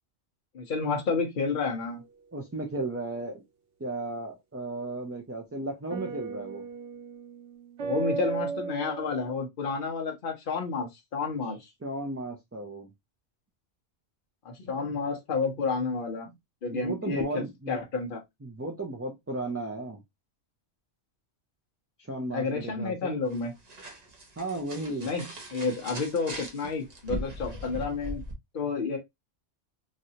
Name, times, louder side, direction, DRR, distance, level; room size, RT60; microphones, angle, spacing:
voice 1, 0.5-2.0 7.8-11.7 14.4-16.3 16.6-18.2 22.3-23.5 25.0-28.2 28.5-29.0, left 4 dB, 50° left, 1.0 m, -30 dB
sound 1, 1.8-2.2 5.9-9.4, right 5 dB, 80° right, 1.0 m, -35 dB
voice 2, 2.3-3.4 3.8-6.6 11.8-12.9 16.7-17.8 18.4-20.0 22.0-23.2 24.4-25.1, right 2 dB, 20° right, 0.4 m, -35 dB
sound 2, 23.3-28.3, equal, 40° right, 0.9 m, -40 dB
3.2 x 2.6 x 2.7 m
omnidirectional pair, 1.2 m